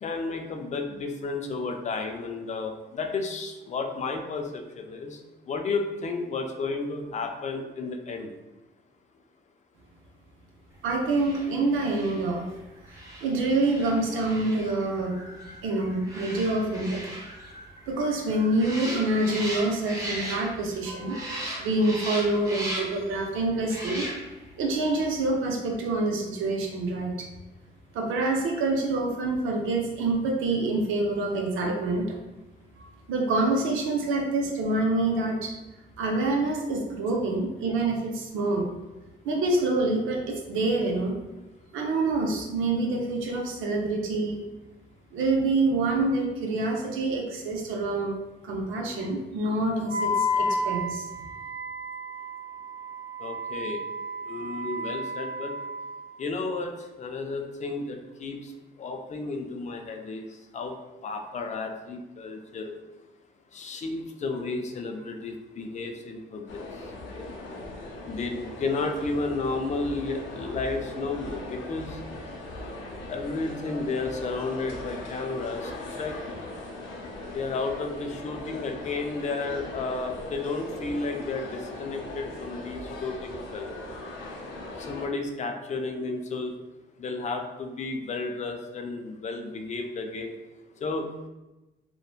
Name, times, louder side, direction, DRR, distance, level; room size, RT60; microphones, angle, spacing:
voice 1, 0.0-5.2 5.5-8.3 53.2-53.8 54.3-55.5 56.2-58.5 58.8-60.3 60.5-60.7 61.0-62.7 63.5-66.6 68.1-72.0 73.1-75.7 76.0-76.1 77.3-83.7 84.9-86.5 87.0-90.3 90.8-91.1, left 3 dB, 35° left, 4 dB, 0.4 m, -32 dB
voice 2, 10.8-12.4 12.9-15.2 15.4-17.1 17.9-24.1 24.6-27.3 27.9-32.2 32.8-35.5 36.0-38.7 39.2-41.1 41.7-44.4 45.1-48.2 48.4-51.1, right 2 dB, 85° right, 0 dB, 0.5 m, -26 dB
sound 1, 11.0-20.8 21.1-23.1 23.6-24.5 24.8-25.0, right 1 dB, 15° right, 0.7 m, -38 dB
Wind instrument woodwind instrument, 49.9-56.0, left 1 dB, 55° right, 0.9 m, -31 dB
sound 2, 66.5-85.1, left 2 dB, 85° left, 0.5 m, -39 dB
3.0 x 2.1 x 2.3 m, 1.1 s
cardioid pair, 90°, 20 cm